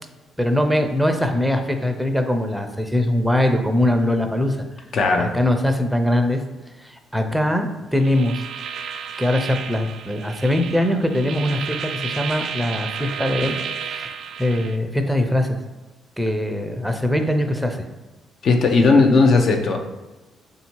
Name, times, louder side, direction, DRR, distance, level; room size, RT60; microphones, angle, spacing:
voice 1, 0.4-4.7 5.2-6.4 6.8-8.4 9.2-13.6 13.8-14.1 14.4-15.6 16.2-17.8, left 1 dB, ahead, 5 dB, 0.5 m, -22 dB
voice 2, 4.9-5.3 18.4-19.8, left 3 dB, 60° left, 3 dB, 0.6 m, -16 dB
sound 1, 8.0-14.8, right 7 dB, 70° right, 0.3 m, -32 dB
3.5 x 2.7 x 4.5 m, 1.2 s
cardioid pair, 90°, 0 cm